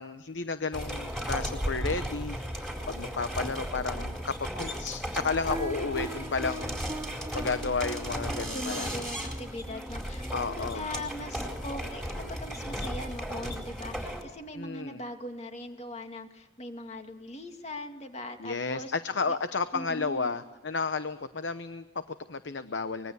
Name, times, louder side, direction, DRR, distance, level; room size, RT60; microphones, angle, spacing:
voice 1, 0.0-6.8 7.3-9.0 10.3-10.9 14.5-15.0 18.4-23.1, left 4 dB, 85° left, 11 dB, 0.9 m, -32 dB
sound 1, 0.7-14.2, equal, ahead, 4.2 m, -35 dB
sound 2, 5.5-12.3, right 1 dB, 15° right, 2.1 m, -42 dB
voice 2, 8.5-18.9 19.3-19.4 19.7-20.4, left 1 dB, 35° left, 5 dB, 2.4 m, -40 dB
24.5 x 21.5 x 8.2 m, 1.0 s
head